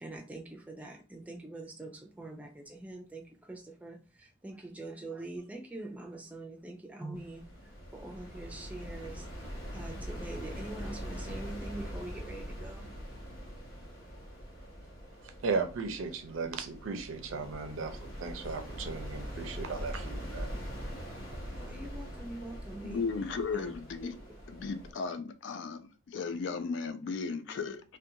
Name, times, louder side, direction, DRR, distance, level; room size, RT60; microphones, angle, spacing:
voice 1, 0.0-7.5 7.9-12.9 21.5-23.0 23.5-23.7, right 2 dB, 5° right, 1 dB, 0.4 m, -44 dB
sound 1, 7.1-24.9, equal, 80° left, 1.0 m, -42 dB
voice 2, 15.2-20.5, right 4 dB, 80° right, 8 dB, 0.5 m, -36 dB
voice 3, 22.8-24.1 24.5-27.8, left 4 dB, 60° left, 10 dB, 0.3 m, -35 dB
2.5 x 2.2 x 2.7 m, 0.33 s
head